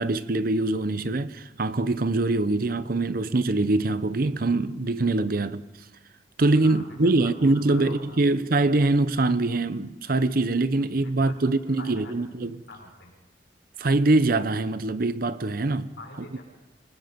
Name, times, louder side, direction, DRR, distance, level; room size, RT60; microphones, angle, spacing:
voice 1, 0.0-5.6 6.4-12.6 13.8-15.9, right 2 dB, 50° right, 0.8 m, -23 dB
voice 2, 6.5-8.2 11.0-11.3 11.6-12.1 12.7-13.1 16.0-16.4, left 2 dB, 75° left, 6.6 m, -45 dB
27.0 x 20.0 x 5.3 m
head